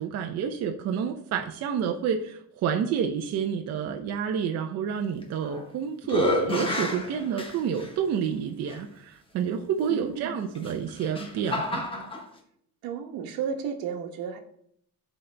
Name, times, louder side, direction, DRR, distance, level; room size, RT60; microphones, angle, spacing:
voice 1, 0.0-12.1, right 7 dB, 45° right, 4 dB, 0.6 m, -29 dB
sound 1, 5.2-5.7 6.0-7.9 8.7-8.8 10.5-12.2, left 2 dB, 15° left, 1.0 m, -29 dB
voice 2, 9.9-10.4 12.8-14.4, right 7 dB, 80° right, 5 dB, 1.1 m, -33 dB
12.0 x 4.1 x 3.3 m, 0.69 s
cardioid pair, 170°, 35 cm